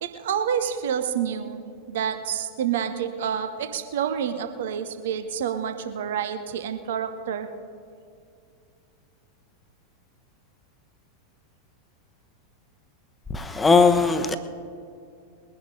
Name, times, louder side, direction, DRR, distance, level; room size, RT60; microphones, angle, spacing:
voice 1, 0.0-1.6 1.9-7.5, right 8 dB, 60° right, 8 dB, 0.9 m, -28 dB
voice 2, 13.3-14.4, left 4 dB, 15° left, 9 dB, 1.0 m, -19 dB
21.5 x 11.0 x 4.1 m, 2.4 s
figure-of-eight pair, 90°, 0 cm